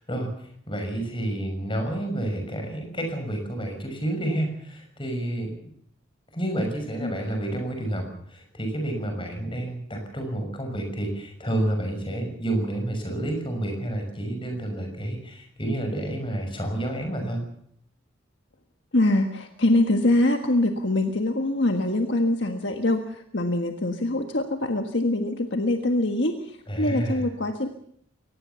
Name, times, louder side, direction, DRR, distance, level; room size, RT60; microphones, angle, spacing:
voice 1, 0.0-5.5 6.3-17.4 26.7-27.2, right 1 dB, 25° left, 4 dB, 6.3 m, -29 dB
voice 2, 18.9-27.7, left 1 dB, 60° left, 5 dB, 1.6 m, -24 dB
23.5 x 19.5 x 7.0 m, 0.66 s
head